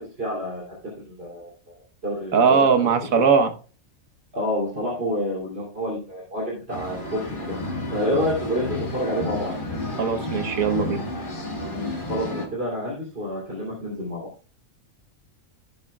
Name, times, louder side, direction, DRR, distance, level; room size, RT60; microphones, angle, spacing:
voice 1, 0.0-1.8 2.0-2.6 4.3-7.6 7.9-9.5 12.0-14.3, equal, 45° right, -5 dB, 3.2 m, -28 dB
voice 2, 2.3-3.5 10.0-11.0, right 5 dB, 85° right, 8 dB, 1.5 m, -19 dB
sound 1, 6.7-12.5, left 2 dB, 35° left, 1.8 m, -31 dB
16.5 x 7.1 x 2.3 m, 0.36 s
omnidirectional pair, 1.4 m